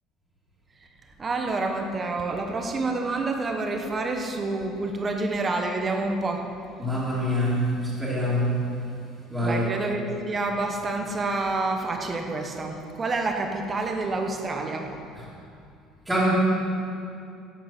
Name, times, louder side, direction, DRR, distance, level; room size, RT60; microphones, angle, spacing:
voice 1, 1.2-6.5 9.4-14.9, right 3 dB, 20° right, 3 dB, 1.0 m, -28 dB
voice 2, 6.8-8.8 9.3-9.7 16.1-16.3, equal, 5° right, -10 dB, 2.4 m, -25 dB
11.5 x 7.9 x 6.2 m, 2.5 s
cardioid pair, 170°, 0 cm